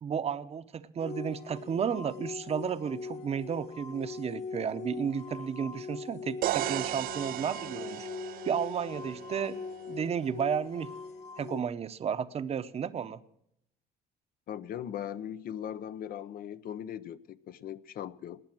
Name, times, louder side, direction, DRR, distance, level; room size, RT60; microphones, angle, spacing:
voice 1, 0.0-8.1 8.4-9.6 9.9-10.9 11.4-13.2, right 7 dB, 35° right, 13 dB, 0.8 m, -33 dB
sound 1, 1.0-11.6, left 5 dB, 40° left, 1.1 m, -42 dB
sound 2, 6.4-10.3, right 14 dB, 60° right, 0.4 m, -36 dB
voice 2, 14.5-18.4, left 9 dB, 60° left, 13 dB, 0.7 m, -39 dB
19.0 x 9.0 x 6.0 m, 0.77 s
cardioid pair, 110°, 17 cm